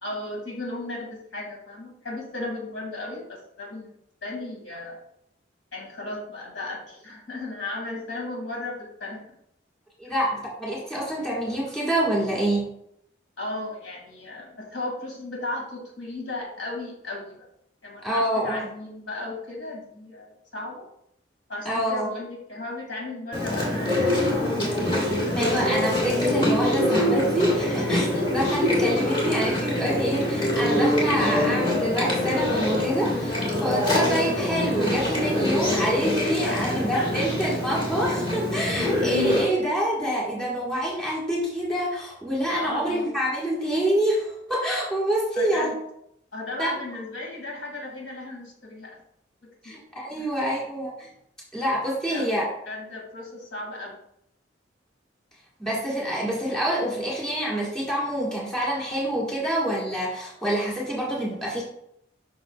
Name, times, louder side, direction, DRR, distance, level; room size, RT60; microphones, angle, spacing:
voice 1, 0.0-3.9 4.2-5.0 5.7-9.2 13.4-17.5 17.8-20.9 21.5-24.5 25.2-25.4 36.5-37.3 39.0-39.1 42.5-43.1 45.4-45.7 46.3-49.0 49.6-49.8 50.2-50.3 52.0-54.0, left 2 dB, 80° left, -2 dB, 2.3 m, -35 dB
voice 2, 10.0-12.7 18.0-18.7 21.6-22.1 25.3-45.7 46.6-46.7 49.6-51.1 51.5-52.5 55.6-61.6, right 1 dB, 5° left, -5 dB, 1.6 m, -26 dB
Chewing mastication, 23.3-39.4, left 1 dB, 25° left, 1.8 m, -24 dB
7.5 x 5.7 x 2.4 m, 0.74 s
head